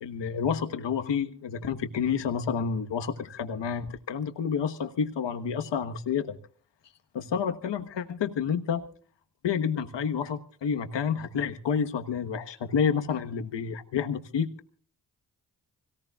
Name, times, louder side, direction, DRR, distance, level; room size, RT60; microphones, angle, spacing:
voice 1, 0.0-6.3 7.1-8.8 9.4-14.5, left 7 dB, 80° left, 7 dB, 1.4 m, -29 dB
25.0 x 18.0 x 2.4 m, 0.43 s
supercardioid pair, 40°, 42 cm